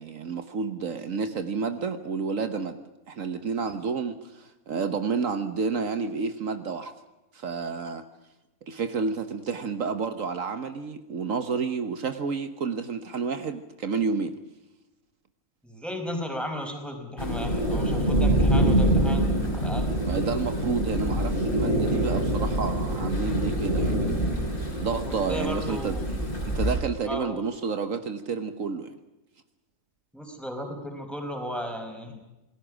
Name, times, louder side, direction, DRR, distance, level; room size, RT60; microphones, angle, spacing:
voice 1, 0.0-2.8 3.1-6.9 7.3-8.0 8.7-14.3 20.0-24.2 24.8-26.2 26.4-29.0, right 5 dB, 70° right, 9 dB, 1.5 m, -30 dB
voice 2, 15.6-19.9 25.1-26.1 27.1-27.4 30.1-32.2, equal, ahead, 3 dB, 4.8 m, -35 dB
sound 1, 17.2-26.8, right 1 dB, 40° left, 6.3 m, -25 dB
27.5 x 20.0 x 6.2 m, 1.0 s
omnidirectional pair, 1.4 m